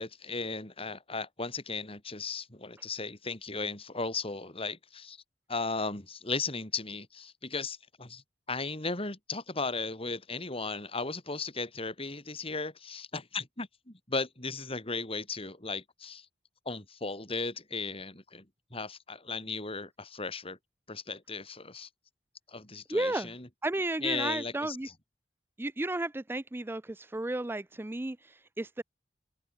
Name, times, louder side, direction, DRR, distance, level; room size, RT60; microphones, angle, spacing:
voice 1, 0.0-5.2 5.5-8.2 8.5-16.3 16.6-18.4 18.7-20.6 20.9-21.9 22.5-23.5 24.0-24.8, left 4 dB, 35° left, 4.8 m, -36 dB
voice 2, 22.9-23.3 23.6-24.9 25.6-28.8, right 2 dB, 15° right, 0.5 m, -33 dB
open air
head